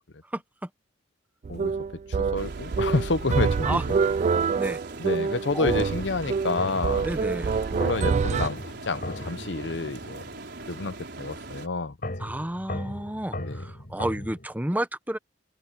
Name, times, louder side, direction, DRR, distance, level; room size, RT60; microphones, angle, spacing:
voice 1, 0.3-0.7 3.6-3.8 4.6-4.8 5.5-5.8 7.0-7.6 12.2-15.2, right 1 dB, 10° right, 0.9 m, -31 dB
sound 1, 1.4-8.5, right 5 dB, 40° right, 0.3 m, -26 dB
voice 2, 2.3-3.8 5.0-7.1 7.7-10.2 10.7-12.1 13.4-13.6, left 3 dB, 75° left, 0.9 m, -29 dB
sound 2, 2.4-11.7, right 2 dB, 65° right, 4.9 m, -40 dB
sound 3, 6.6-10.6 12.0-14.5, left 1 dB, 55° left, 4.5 m, -38 dB
open air
head